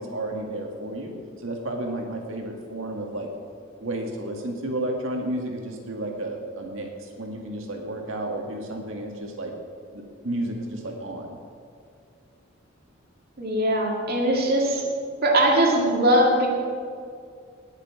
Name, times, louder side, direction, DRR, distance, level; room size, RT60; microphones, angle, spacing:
voice 1, 0.0-3.3 3.8-9.5 9.9-11.4, right 1 dB, 75° right, 1 dB, 1.9 m, -32 dB
voice 2, 13.4-14.8 15.2-16.5, right 1 dB, 50° right, -1 dB, 2.1 m, -20 dB
19.0 x 6.7 x 4.8 m, 2.3 s
head